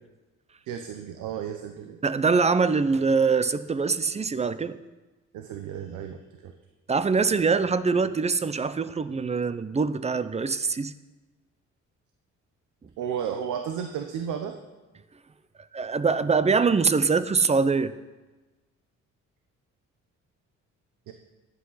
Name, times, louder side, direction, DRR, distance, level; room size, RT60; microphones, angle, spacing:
voice 1, 0.7-2.0 5.3-6.6 13.0-14.6 21.1-21.2, right 8 dB, 85° right, 6 dB, 0.9 m, -33 dB
voice 2, 2.0-4.8 6.9-10.9 15.7-17.9, right 4 dB, 20° right, 14 dB, 0.6 m, -23 dB
11.5 x 8.2 x 5.7 m, 1.2 s
cardioid pair, 90°, 30 cm